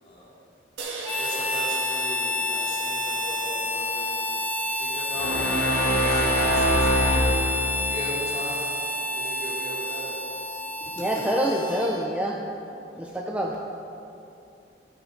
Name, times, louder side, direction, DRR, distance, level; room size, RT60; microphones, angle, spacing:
voice 1, 0.0-0.3 1.1-4.3 4.8-7.3 7.9-8.6 8.9-10.1 10.8-10.9, equal, 30° left, -6 dB, 2.6 m, -38 dB
sound 1, 0.8-4.3, right 3 dB, 90° right, 1.6 m, -40 dB
Harmonica, 1.0-12.1, left 1 dB, 10° left, 0.9 m, -29 dB
sound 2, 5.2-7.9, equal, 75° left, 2.1 m, -23 dB
voice 2, 11.0-12.4 13.0-13.6, equal, 5° right, -1 dB, 0.5 m, -26 dB
13.5 x 8.1 x 5.0 m, 2.7 s
head